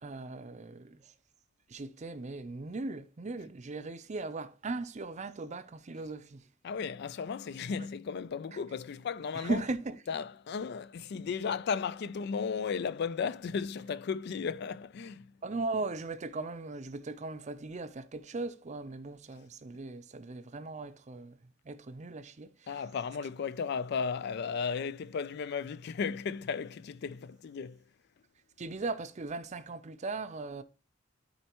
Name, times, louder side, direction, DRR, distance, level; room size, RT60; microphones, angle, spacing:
voice 1, 0.0-1.1 1.7-6.5 9.3-10.0 15.4-21.4 21.6-22.7 28.6-30.6, right 3 dB, 35° right, 0.5 m, -38 dB
voice 2, 6.6-9.6 10.1-15.3 22.7-27.8, left 6 dB, 55° left, 0.4 m, -35 dB
12.5 x 4.4 x 3.0 m
head